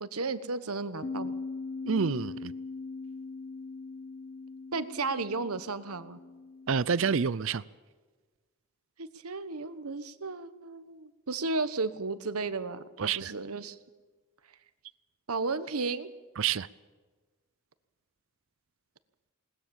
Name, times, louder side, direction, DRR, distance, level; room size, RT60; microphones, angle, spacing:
voice 1, 0.0-1.3 4.7-6.2 9.0-13.8 15.3-16.1, right 3 dB, 85° right, 1.2 m, -34 dB
Bass guitar, 1.0-7.3, left 3 dB, 40° left, 1.1 m, -40 dB
voice 2, 1.9-2.5 6.7-7.6 13.0-13.3 16.4-16.7, right 6 dB, 60° right, 0.5 m, -28 dB
21.0 x 19.5 x 7.2 m
head